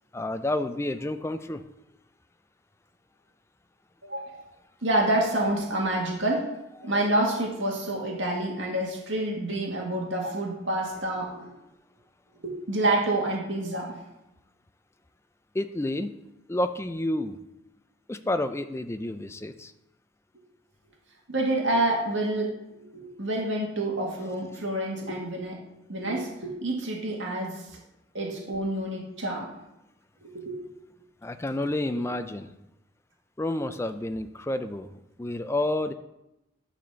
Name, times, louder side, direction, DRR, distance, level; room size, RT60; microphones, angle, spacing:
voice 1, 0.1-1.6 15.5-16.1 16.5-17.4 18.1-19.7 31.2-32.5 33.4-34.9 35.2-35.9, left 1 dB, 15° left, 10 dB, 0.3 m, -29 dB
voice 2, 4.0-4.4 4.8-6.5 6.8-11.5 12.4-14.0 21.3-22.6 22.9-25.6 25.9-27.8 28.1-29.5 30.2-30.6, right 1 dB, 70° right, -1 dB, 2.0 m, -28 dB
10.5 x 4.2 x 6.8 m, 0.90 s
head